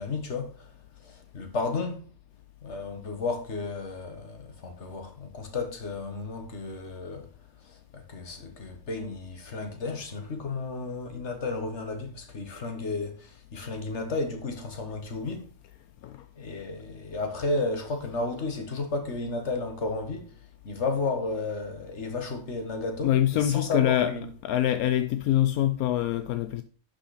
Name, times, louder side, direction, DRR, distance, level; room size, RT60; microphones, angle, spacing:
voice 1, 0.0-2.1 2.6-7.3 7.6-15.5 16.4-24.3, left 3 dB, 50° left, 1.8 m, -33 dB
voice 2, 23.0-24.1 24.4-26.6, left 12 dB, 80° left, 1.1 m, -24 dB
11.5 x 5.8 x 4.2 m
omnidirectional pair, 1.5 m